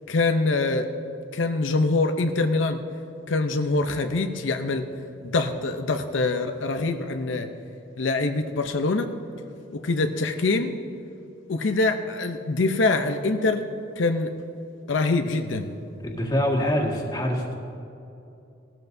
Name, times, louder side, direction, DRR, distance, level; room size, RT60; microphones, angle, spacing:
voice 1, 0.1-0.9 1.3-2.8 3.3-4.9 5.2-7.5 8.0-9.1 9.7-10.7 11.5-13.7 14.0-14.3 14.9-15.7, left 3 dB, 85° left, 6 dB, 0.6 m, -24 dB
voice 2, 16.0-17.5, equal, 20° left, -1 dB, 1.8 m, -25 dB
18.0 x 13.5 x 2.7 m, 2.7 s
head